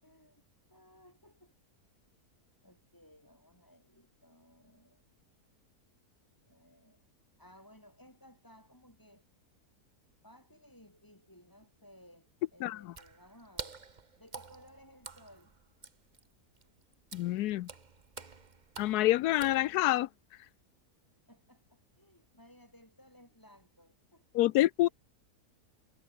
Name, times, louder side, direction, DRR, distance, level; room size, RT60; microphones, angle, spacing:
voice 1, 0.0-0.4 0.7-1.5 2.6-5.0 6.5-7.0 7.4-9.2 10.2-13.8 14.2-15.5 21.3-24.3 24.9-25.0, equal, 10° left, 7.2 m, -59 dB
voice 2, 12.6-12.9 17.1-17.7 18.8-20.1 24.3-24.9, left 15 dB, 80° left, 1.1 m, -27 dB
Water / Splash splatter, 12.9-20.1, right 4 dB, 30° right, 1.3 m, -49 dB
omnidirectional pair, 1.7 m